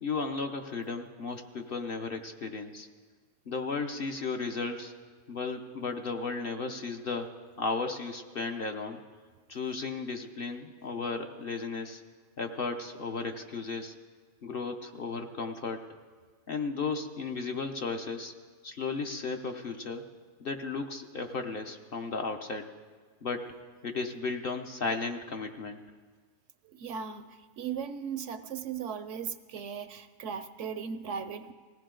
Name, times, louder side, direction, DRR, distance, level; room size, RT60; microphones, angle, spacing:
voice 1, 0.0-2.9 3.5-4.9 5.3-7.3 7.6-9.0 9.5-12.0 12.4-13.9 14.4-15.8 16.5-18.3 18.6-20.0 20.4-22.7 23.2-23.5 23.8-25.8, left 4 dB, 50° left, 4 dB, 0.9 m, -34 dB
voice 2, 26.8-27.2 27.6-31.5, right 7 dB, 70° right, 11 dB, 0.8 m, -37 dB
19.0 x 16.5 x 3.8 m, 1.5 s
omnidirectional pair, 1.4 m